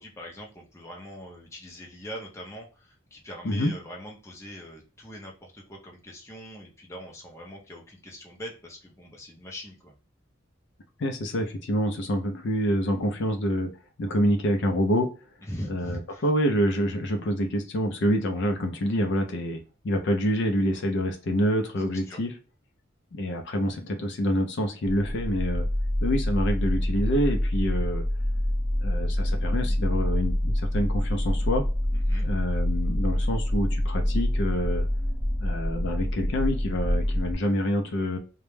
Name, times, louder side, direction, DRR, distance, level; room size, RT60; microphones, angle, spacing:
voice 1, 0.0-9.9 15.4-16.2 22.1-22.2 31.9-32.3, equal, 15° left, 0 dB, 0.6 m, -42 dB
voice 2, 11.0-13.7 14.0-15.1 15.7-22.3 23.1-25.7 26.0-28.0 28.8-31.7 32.2-34.8 35.4-38.2, equal, 60° left, 4 dB, 0.4 m, -27 dB
sound 1, 24.9-37.3, left 1 dB, 40° left, 0.9 m, -26 dB
2.2 x 2.0 x 3.1 m, 0.34 s
head